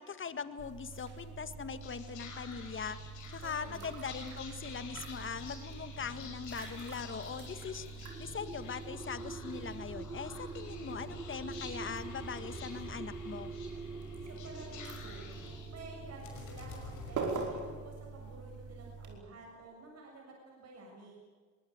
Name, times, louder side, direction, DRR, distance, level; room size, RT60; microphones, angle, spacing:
voice 1, 0.0-3.0 3.3-13.5, left 6 dB, 40° left, 11 dB, 1.7 m, -41 dB
sound 1, 0.6-19.1, right 4 dB, 80° right, 5.2 m, -45 dB
Whispering, 1.5-18.1, left 5 dB, 85° left, 5.9 m, -50 dB
voice 2, 3.4-3.9 14.2-15.4 15.7-21.2, right 2 dB, 55° right, -1 dB, 7.2 m, -51 dB
sound 2, 7.9-16.3, right 3 dB, 15° right, 0.8 m, -46 dB
23.0 x 20.5 x 9.4 m, 1.5 s
cardioid pair, 90°, 30 cm